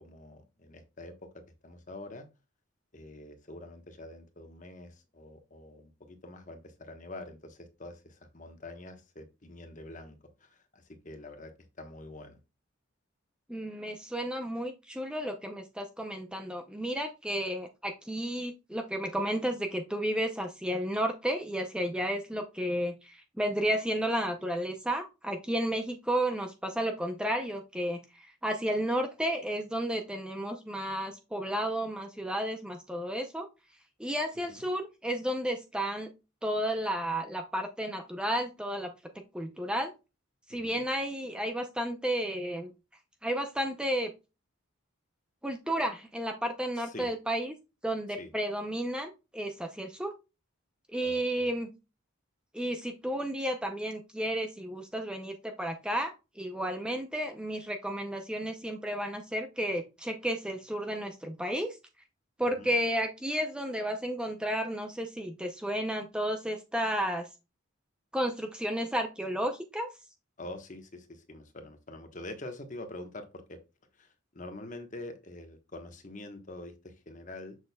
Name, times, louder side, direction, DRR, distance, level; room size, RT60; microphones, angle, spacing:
voice 1, 0.0-2.3 2.9-11.5 11.8-12.4 34.5-34.6 40.5-40.8 46.8-47.1 48.2-48.3 51.0-51.5 62.6-62.7 70.4-73.6 74.0-77.6, left 2 dB, 35° left, 1.2 m, -46 dB
voice 2, 13.5-33.5 34.0-36.1 36.4-38.9 39.3-39.9 40.5-42.7 43.2-44.1 45.4-47.5 47.8-50.1 50.9-51.7 52.5-61.8 62.4-67.3 68.1-69.9, equal, 5° right, 0.6 m, -32 dB
7.4 x 6.4 x 2.3 m
head